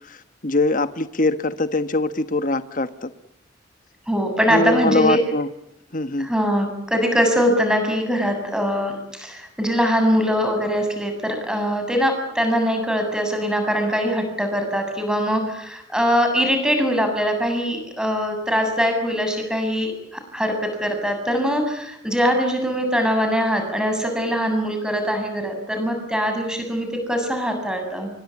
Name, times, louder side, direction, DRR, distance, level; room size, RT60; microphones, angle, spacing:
voice 1, 0.4-3.1 4.5-5.5 5.9-6.3, left 2 dB, 45° left, 11 dB, 1.3 m, -22 dB
voice 2, 4.1-5.2 6.2-28.1, equal, 5° right, 5 dB, 7.6 m, -22 dB
27.5 x 24.0 x 8.7 m, 0.78 s
head